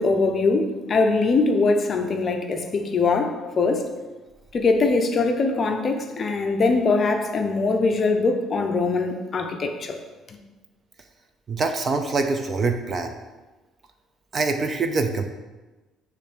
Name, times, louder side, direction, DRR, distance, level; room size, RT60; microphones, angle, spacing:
voice 1, 0.0-3.9 4.5-10.0, left 3 dB, 30° left, 4 dB, 0.6 m, -22 dB
voice 2, 11.5-13.2 14.3-15.2, right 3 dB, 25° right, 6 dB, 0.4 m, -24 dB
6.6 x 3.2 x 6.0 m, 1.2 s
cardioid pair, 175°, 0 cm